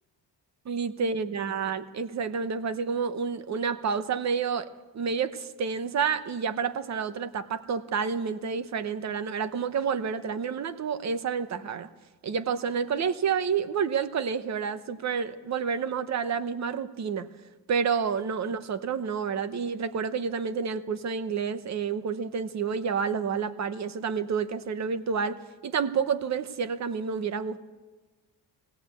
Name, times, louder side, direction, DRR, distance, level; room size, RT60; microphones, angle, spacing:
voice 1, 0.7-4.7 4.9-11.9 12.2-17.3 17.7-27.6, right 6 dB, 40° right, 12 dB, 0.9 m, -29 dB
19.5 x 16.5 x 8.2 m, 1.2 s
cardioid pair, 180°, 44 cm